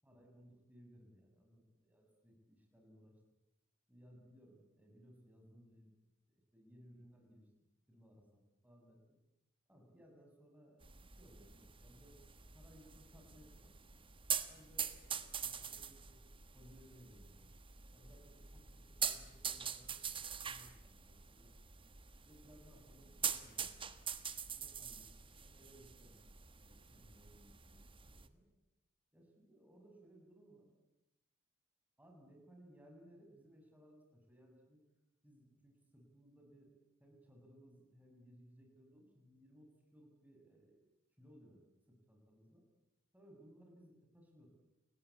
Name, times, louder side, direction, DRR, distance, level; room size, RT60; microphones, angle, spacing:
voice 1, 0.0-3.1 3.9-5.9 6.3-7.5 7.9-9.2 9.7-12.2 12.5-13.7 14.5-16.2 16.5-17.5 17.9-21.5 22.3-23.7 24.5-26.2 26.6-27.8 28.1-28.4 29.1-30.7 32.0-34.8 35.2-36.7 37.0-40.8 41.2-41.6 41.9-42.6 43.1-44.5, equal, 5° right, 1 dB, 7.5 m, -62 dB
sound 1, 10.8-28.3, right 7 dB, 25° right, 1.4 m, -45 dB
29.5 x 20.0 x 8.7 m, 0.91 s
head